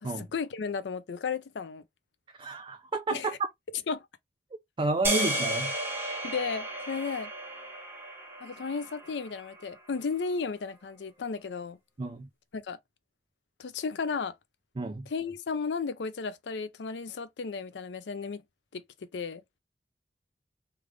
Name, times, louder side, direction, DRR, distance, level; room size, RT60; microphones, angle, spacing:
voice 1, 0.0-1.8 3.1-3.4 3.9-4.1 6.2-7.3 8.4-11.8 12.5-12.8 13.6-14.3 15.1-18.4 18.7-19.4, left 5 dB, 80° left, 0.5 m, -34 dB
voice 2, 2.4-3.4 4.8-5.7 12.0-12.3 14.8-15.1, right 2 dB, 30° right, 0.4 m, -31 dB
sound 1, 5.0-9.4, right 1 dB, 15° right, 0.9 m, -33 dB
3.3 x 2.4 x 3.1 m
head